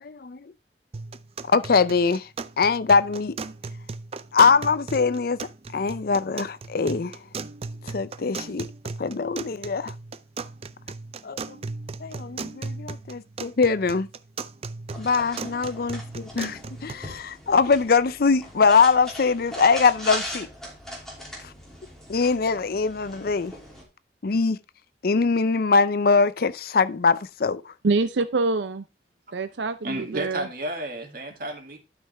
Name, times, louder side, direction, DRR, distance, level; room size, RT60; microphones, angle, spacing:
voice 1, 0.0-0.4 1.5-2.3 2.6-3.4 4.3-5.4 5.7-7.1 7.8-8.7 9.0-9.9 11.2-11.6 12.0-14.1 15.0-20.5 22.1-23.5 24.2-24.6 25.0-27.7, left 4 dB, 55° left, 0.5 m, -22 dB
sound 1, 0.9-16.9, right 4 dB, 35° right, 0.4 m, -37 dB
sound 2, 14.9-23.8, equal, 5° left, 3.0 m, -39 dB
voice 2, 27.8-28.8 29.3-30.5, right 3 dB, 80° right, 0.6 m, -25 dB
voice 3, 29.8-31.8, right 1 dB, 55° right, 2.4 m, -32 dB
12.0 x 5.7 x 3.4 m
head